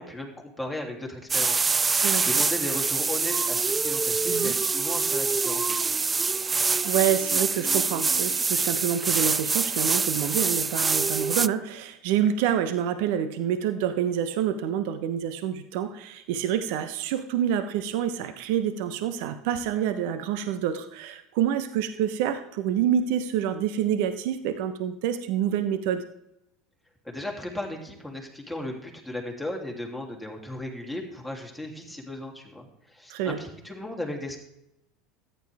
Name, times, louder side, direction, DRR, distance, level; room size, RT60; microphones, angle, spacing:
voice 1, 0.0-1.6 1.9-5.9 27.0-34.4, left 1 dB, ahead, 0 dB, 3.1 m, -36 dB
sound 1, 1.3-11.5, right 4 dB, 20° right, 0.3 m, -25 dB
voice 2, 6.8-26.0 33.1-33.4, right 9 dB, 70° right, 10 dB, 0.9 m, -27 dB
14.0 x 10.0 x 3.5 m, 0.82 s
hypercardioid pair, 80°, 0 cm